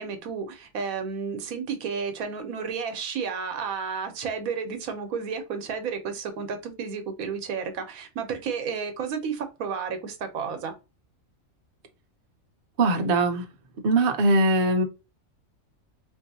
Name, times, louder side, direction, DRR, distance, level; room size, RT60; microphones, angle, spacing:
voice 1, 0.0-10.7, right 6 dB, 85° right, 1.2 m, -32 dB
voice 2, 12.8-13.4 13.8-14.8, right 2 dB, 50° right, 0.8 m, -21 dB
4.3 x 2.6 x 2.7 m
omnidirectional pair, 1.4 m